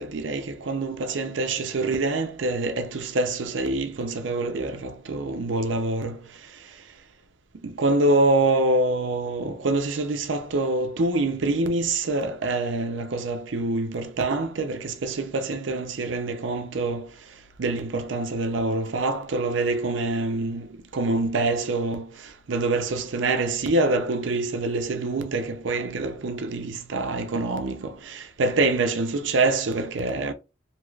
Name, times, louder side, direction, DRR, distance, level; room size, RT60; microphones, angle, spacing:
voice 1, 0.0-6.8 7.6-17.1 17.6-30.3, right 2 dB, 85° right, 0.6 m, -26 dB
2.8 x 2.3 x 3.2 m
head